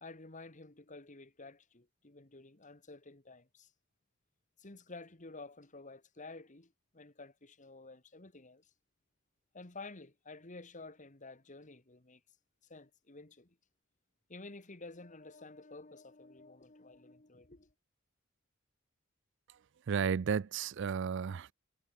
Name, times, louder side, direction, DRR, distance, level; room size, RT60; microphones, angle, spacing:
voice 1, 0.0-3.7 4.6-8.7 9.5-12.2 12.7-13.6 14.3-17.7, left 3 dB, 40° left, 2.0 m, -51 dB
voice 2, 19.9-21.5, right 6 dB, 60° right, 0.4 m, -33 dB
head